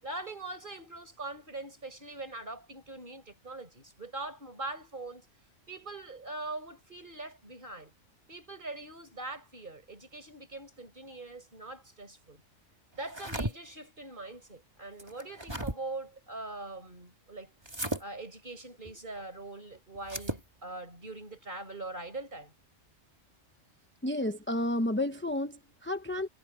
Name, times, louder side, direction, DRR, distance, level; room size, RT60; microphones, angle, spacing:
voice 1, 0.0-5.3 5.7-7.9 8.3-12.4 12.9-17.5 18.0-22.5, right 2 dB, 40° right, 5.3 m, -42 dB
sound 1, 13.0-13.5 15.0-15.8 17.6-18.0 20.0-20.4, right 1 dB, 20° right, 2.5 m, -35 dB
voice 2, 24.0-26.3, left 1 dB, 10° left, 1.0 m, -31 dB
omnidirectional pair, 1.3 m